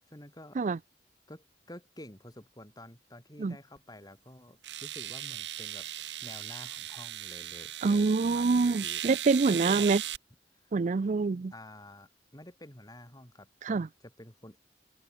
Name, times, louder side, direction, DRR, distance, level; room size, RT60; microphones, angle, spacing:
voice 1, 0.1-0.6 1.3-5.9 6.2-9.0 9.5-9.9 10.6-10.8 11.5-14.6, left 1 dB, 20° left, 7.6 m, -50 dB
sound 1, 3.8-3.9 4.6-10.2, right 12 dB, 80° right, 1.7 m, -38 dB
voice 2, 7.8-10.0 10.7-11.5 13.6-13.9, right 4 dB, 45° right, 0.4 m, -26 dB
open air
head